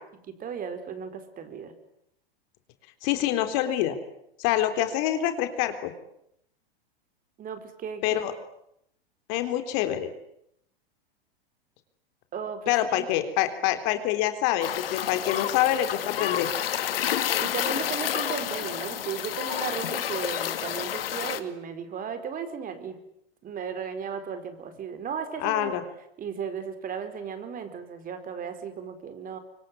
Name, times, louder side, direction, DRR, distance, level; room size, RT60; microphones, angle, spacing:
voice 1, 0.3-1.7 7.4-8.2 12.3-13.1 17.4-23.0 23.4-25.7 26.2-29.4, right 7 dB, 30° right, 9 dB, 4.6 m, -35 dB
voice 2, 3.0-4.0 4.4-5.9 8.0-8.3 9.3-10.1 12.7-16.5 25.4-25.8, left 12 dB, 50° left, 8 dB, 3.7 m, -26 dB
sound 1, 14.6-21.4, left 10 dB, 70° left, 2.4 m, -29 dB
25.0 x 24.0 x 9.6 m, 0.76 s
hypercardioid pair, 105°, 29 cm